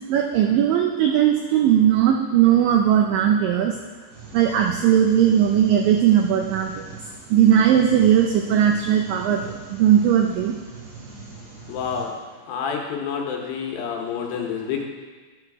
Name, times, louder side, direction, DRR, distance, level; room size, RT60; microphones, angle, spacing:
voice 1, 0.1-3.8 4.3-6.9 7.3-10.5, right 9 dB, 85° right, 2 dB, 2.0 m, -18 dB
sound 1, 4.1-12.1, right 4 dB, 60° right, 4.1 m, -41 dB
voice 2, 11.7-12.1 12.5-14.8, left 6 dB, 75° left, 1 dB, 2.5 m, -28 dB
11.0 x 4.9 x 4.7 m, 1.4 s
omnidirectional pair, 4.6 m